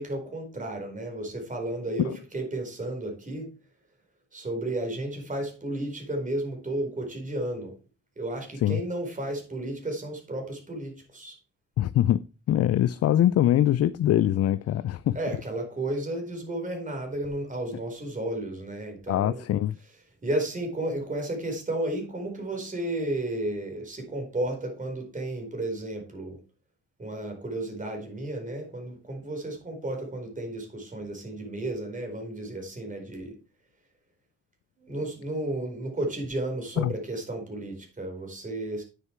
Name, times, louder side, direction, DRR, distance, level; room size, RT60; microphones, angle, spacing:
voice 1, 0.0-3.6 4.3-7.8 8.2-11.4 15.1-19.4 20.2-26.4 27.0-33.4 34.8-38.8, right 1 dB, 25° right, 4.4 m, -33 dB
voice 2, 11.8-15.2 19.1-19.8 36.8-36.9, left 12 dB, 55° left, 0.5 m, -23 dB
9.3 x 6.7 x 4.6 m
cardioid pair, 90°, 30 cm